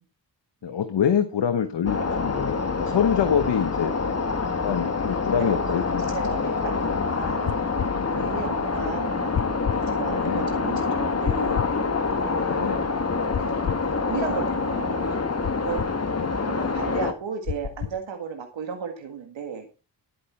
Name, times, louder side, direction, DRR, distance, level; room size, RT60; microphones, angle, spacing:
voice 1, 0.6-3.9 4.6-6.0 7.9-8.3 10.1-10.5 12.4-12.8 16.0-16.3, left 8 dB, 70° left, 9 dB, 1.2 m, -26 dB
sound 1, 1.9-17.1, left 4 dB, 35° left, 1.7 m, -26 dB
voice 2, 6.1-7.6 8.1-9.3 9.8-11.6 12.1-12.7 13.4-13.7 14.0-15.1 15.6-15.8 16.4-19.7, right 6 dB, 85° right, 4 dB, 1.9 m, -34 dB
sound 2, 7.4-7.9 9.3-9.8 11.2-11.7 13.3-13.9 15.4-15.9 17.4-18.0, left 8 dB, 50° left, 0.9 m, -29 dB
11.0 x 10.0 x 4.4 m, 0.33 s
cardioid pair, 65°, 44 cm